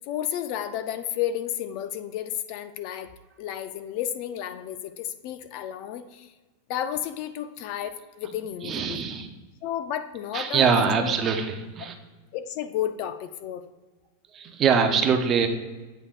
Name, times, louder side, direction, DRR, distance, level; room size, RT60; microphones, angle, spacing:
voice 1, 0.0-3.1 3.4-6.3 6.7-9.0 9.6-11.2 12.3-13.6, left 10 dB, 40° left, 10 dB, 0.4 m, -32 dB
voice 2, 8.6-9.3 10.3-11.9 14.3-15.5, right 6 dB, 25° right, 6 dB, 0.6 m, -23 dB
8.1 x 5.4 x 2.4 m, 1.3 s
supercardioid pair, 165°, 0 cm